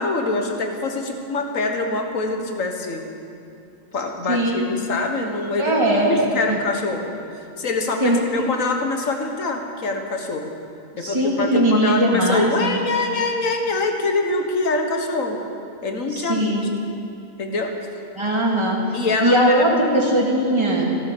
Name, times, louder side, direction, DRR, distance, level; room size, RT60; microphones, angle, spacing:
voice 1, 0.0-3.0 3.9-5.8 6.1-10.5 11.0-15.4 15.8-16.5 17.4-17.7 18.9-19.7, left 3 dB, 65° left, 3 dB, 1.8 m, -24 dB
voice 2, 4.3-4.7 5.6-6.6 8.0-8.2 11.0-12.8 16.1-16.7 18.2-18.8 19.2-20.8, right 1 dB, 20° right, -2 dB, 2.3 m, -20 dB
15.0 x 13.5 x 6.9 m, 2.6 s
omnidirectional pair, 1.5 m